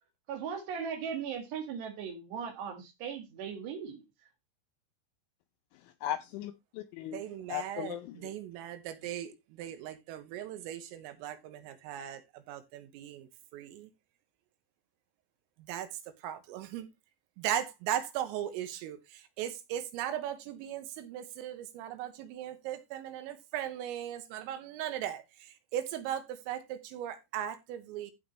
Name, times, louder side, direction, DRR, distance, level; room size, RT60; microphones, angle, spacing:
voice 1, 0.3-4.0, right 7 dB, 65° right, 3.6 m, -38 dB
voice 2, 5.7-7.2 7.5-8.3, left 12 dB, 85° left, 2.7 m, -38 dB
voice 3, 7.1-8.0 8.2-13.9 15.7-15.9 16.2-16.9 17.4-28.1, right 11 dB, 90° right, 3.8 m, -38 dB
15.5 x 5.3 x 3.1 m
omnidirectional pair, 5.9 m